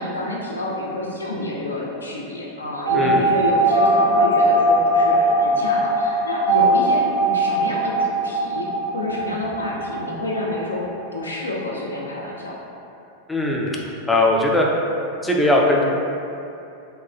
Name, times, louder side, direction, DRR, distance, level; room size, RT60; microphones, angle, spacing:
voice 1, 0.0-8.7 8.9-10.8 11.1-12.6, left 1 dB, 75° left, -3 dB, 0.4 m, -28 dB
sound 1, 2.8-11.3 11.6-11.7 11.9-12.0, right 1 dB, 85° right, 0.9 m, -20 dB
voice 2, 2.9-3.3 13.3-14.7 15.2-15.8, left 1 dB, 5° left, -2 dB, 0.3 m, -19 dB
2.8 x 2.2 x 2.4 m, 2.7 s
figure-of-eight pair, 90°, 0 cm